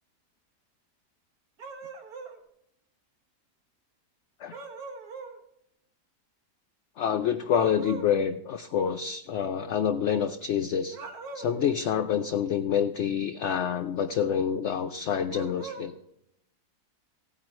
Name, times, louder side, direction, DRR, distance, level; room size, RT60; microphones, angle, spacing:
sound 1, 1.6-2.4 4.5-5.4 7.5-8.1 10.9-11.6 15.3-15.9, right 4 dB, 65° right, 1.8 m, -41 dB
voice 1, 7.0-11.0 11.3-15.9, left 8 dB, 70° left, 7 dB, 0.6 m, -27 dB
16.0 x 9.0 x 3.2 m, 0.77 s
omnidirectional pair, 1.8 m